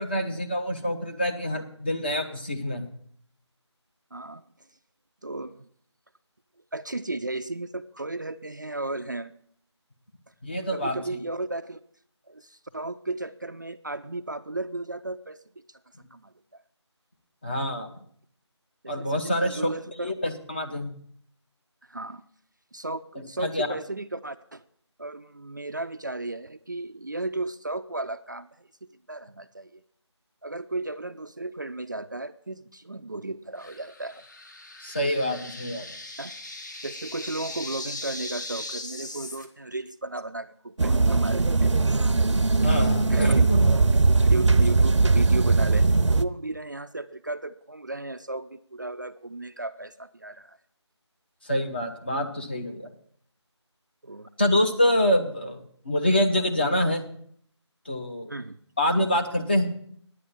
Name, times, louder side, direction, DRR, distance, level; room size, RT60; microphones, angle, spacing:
voice 1, 0.0-2.9 10.4-11.2 17.4-17.9 18.9-19.6 20.0-20.9 23.4-23.7 34.8-35.9 42.6-43.6 51.4-52.9 54.4-57.0 57.9-58.3 58.8-59.7, left 1 dB, 20° left, 3 dB, 0.7 m, -26 dB
voice 2, 4.1-4.4 5.2-5.7 6.7-9.4 10.7-11.8 12.3-15.8 16.1-16.6 18.8-20.1 21.9-22.2 22.7-24.6 25.0-28.7 29.1-29.8 30.4-34.2 36.2-36.4 36.8-41.7 42.6-42.7 43.1-43.4 44.2-50.6 54.0-54.3 58.3-58.6, right 2 dB, 40° right, 10 dB, 0.4 m, -35 dB
sound 1, 33.6-39.5, left 2 dB, 40° left, 1.2 m, -39 dB
sound 2, 40.8-46.2, right 3 dB, 80° right, 0.6 m, -20 dB
10.0 x 8.6 x 6.9 m, 0.62 s
figure-of-eight pair, 170°, 15 cm